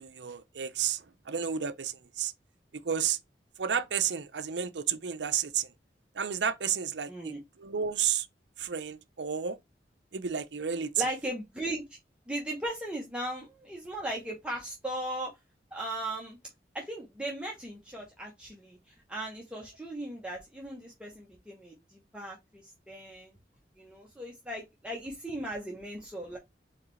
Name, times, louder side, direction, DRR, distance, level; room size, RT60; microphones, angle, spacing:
voice 1, 0.0-2.3 2.8-3.2 3.6-5.7 6.2-7.3 7.6-8.3 8.6-9.6 10.1-10.9, right 8 dB, 85° right, 0.6 m, -31 dB
voice 2, 7.1-7.4 11.0-11.8 12.3-15.3 15.7-16.4 16.7-18.8 19.1-23.3 23.8-26.4, right 1 dB, 5° right, 1.0 m, -37 dB
4.8 x 3.3 x 3.2 m
head